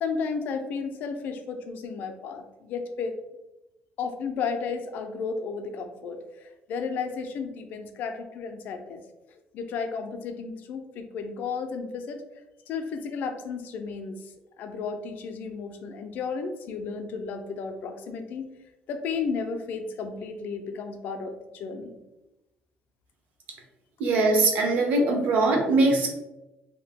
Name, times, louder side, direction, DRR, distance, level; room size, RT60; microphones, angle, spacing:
voice 1, 0.0-3.2 4.0-9.0 9.5-12.2 12.7-14.2 14.6-18.5 18.9-22.0, left 5 dB, 55° left, 6 dB, 0.4 m, -33 dB
voice 2, 24.0-26.1, right 2 dB, 55° right, 1 dB, 0.7 m, -21 dB
2.7 x 2.1 x 3.5 m, 0.98 s
cardioid pair, 165°, 4 cm